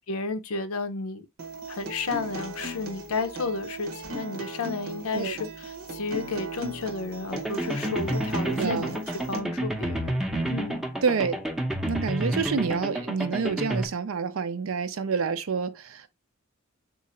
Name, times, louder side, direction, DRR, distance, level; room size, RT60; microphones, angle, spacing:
voice 1, 0.1-1.3 1.7-9.0 9.3-10.2 10.5-10.8, left 4 dB, 85° left, 0.6 m, -32 dB
Acoustic guitar, 1.4-9.4, right 2 dB, 85° right, 0.9 m, -37 dB
sound 1, 7.3-13.9, right 1 dB, ahead, 0.6 m, -30 dB
voice 2, 8.5-8.9 10.3-10.5 11.0-11.4 11.9-16.1, right 5 dB, 70° right, 0.5 m, -28 dB
3.8 x 2.5 x 4.1 m
head